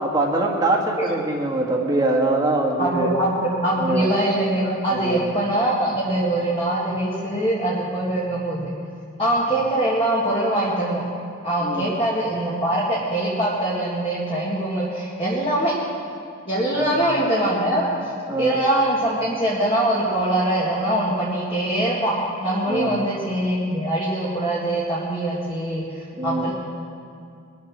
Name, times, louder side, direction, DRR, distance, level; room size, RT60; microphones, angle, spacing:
voice 1, 0.0-3.1 3.7-4.1 4.9-5.3 11.6-11.9 16.7-17.0 18.3-18.6 22.7-23.0 26.1-26.5, right 2 dB, 20° right, -1 dB, 1.7 m, -23 dB
voice 2, 2.8-8.7 9.2-11.0 11.4-15.7 16.5-17.9 18.4-22.1 22.4-26.5, right 1 dB, 25° left, -8 dB, 2.0 m, -23 dB
21.5 x 7.4 x 6.2 m, 2.3 s
head